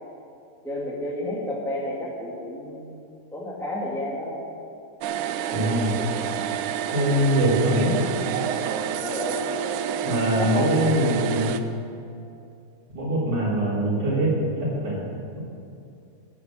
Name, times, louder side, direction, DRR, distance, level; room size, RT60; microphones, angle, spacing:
voice 1, 0.6-3.0 3.3-4.4 9.0-9.4 10.3-11.5, left 1 dB, ahead, -4 dB, 1.0 m, -31 dB
sound 1, 5.0-11.6, right 8 dB, 85° right, 1.7 m, -28 dB
voice 2, 5.5-6.1 6.9-8.0 10.0-11.5 12.9-14.3 14.6-15.4, right 1 dB, 45° right, -6 dB, 4.3 m, -23 dB
14.5 x 7.9 x 7.6 m, 2.7 s
omnidirectional pair, 4.1 m